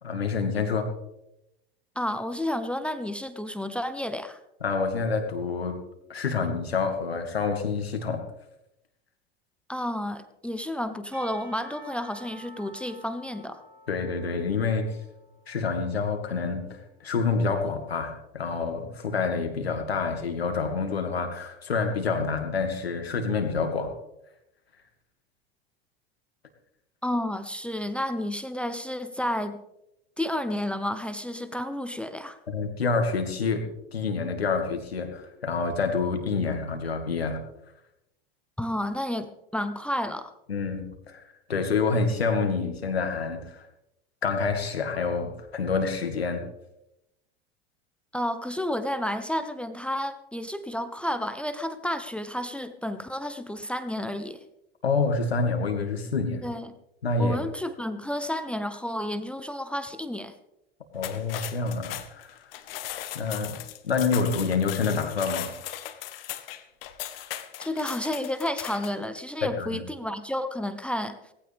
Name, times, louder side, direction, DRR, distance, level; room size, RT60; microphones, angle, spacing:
voice 1, 0.0-0.9 4.6-5.8 6.1-8.2 13.9-14.9 15.5-23.9 32.5-37.4 40.5-41.2 41.5-43.7 44.2-46.4 54.8-56.5 57.0-57.4 60.9-62.4 63.1-63.6 63.8-65.5 69.4-69.8, left 4 dB, 90° left, 5 dB, 2.3 m, -27 dB
voice 2, 1.9-4.4 9.7-13.6 27.0-29.6 30.2-32.4 38.6-40.3 48.1-54.4 56.4-56.7 57.2-60.3 67.6-71.2, left 1 dB, 5° left, 11 dB, 1.0 m, -31 dB
Percussion / Church bell, 11.1-16.4, right 1 dB, 35° right, 5.7 m, -50 dB
sound 1, 60.9-69.0, left 12 dB, 70° left, 1.5 m, -38 dB
18.0 x 16.0 x 3.5 m, 0.87 s
hypercardioid pair, 85°, 30 cm